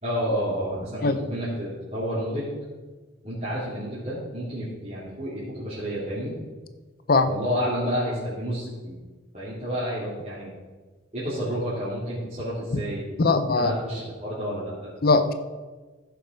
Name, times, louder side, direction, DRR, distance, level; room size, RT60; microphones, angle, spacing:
voice 1, 0.0-2.5 3.2-6.3 7.2-9.0 9.3-10.5 11.1-13.0 13.5-14.9, equal, 35° right, -11 dB, 3.3 m, -30 dB
voice 2, 13.2-13.7 15.0-15.3, left 3 dB, 50° left, 9 dB, 0.7 m, -20 dB
15.5 x 7.0 x 4.6 m, 1.3 s
head